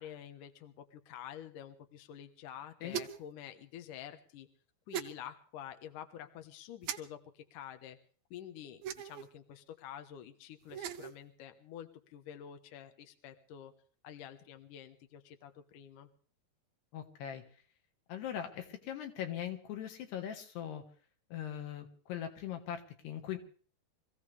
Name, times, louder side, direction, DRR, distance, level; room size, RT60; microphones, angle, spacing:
voice 1, 0.0-4.5 4.9-8.0 8.3-13.7 14.0-16.1, left 10 dB, 65° left, 8 dB, 2.5 m, -49 dB
sound 1, 2.9-3.3 4.9-5.1 6.8-7.0 8.8-9.3 10.6-11.1, right 9 dB, 75° right, 2.6 m, -39 dB
voice 2, 16.9-17.4 18.1-20.8 21.3-23.4, left 10 dB, 85° left, 5 dB, 3.9 m, -40 dB
25.5 x 15.5 x 3.4 m, 0.42 s
omnidirectional pair, 4.6 m